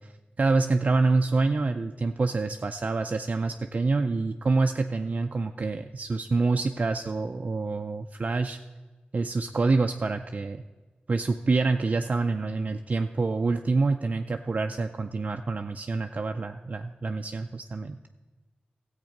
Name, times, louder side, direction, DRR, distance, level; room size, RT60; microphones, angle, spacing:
voice 1, 0.0-8.6 9.1-10.6 11.1-18.0, right 3 dB, 45° right, 5 dB, 0.4 m, -27 dB
14.0 x 8.1 x 5.2 m, 1.3 s
wide cardioid pair, 90°, 3 cm